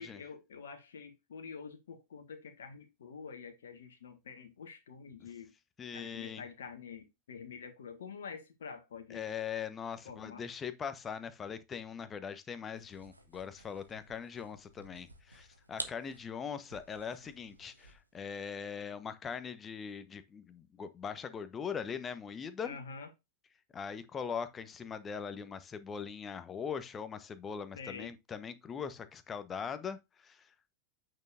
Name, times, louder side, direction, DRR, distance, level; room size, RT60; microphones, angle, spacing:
voice 1, 0.0-5.5 5.9-9.3 10.0-10.4 22.6-23.1 27.8-28.1, left 5 dB, 65° left, 1.6 m, -47 dB
voice 2, 5.8-6.4 9.1-22.8 23.7-30.8, left 7 dB, 20° left, 1.1 m, -41 dB
sound 1, 12.7-18.2, right 2 dB, 85° right, 1.4 m, -49 dB
8.7 x 6.6 x 2.6 m
figure-of-eight pair, 90°, 0 cm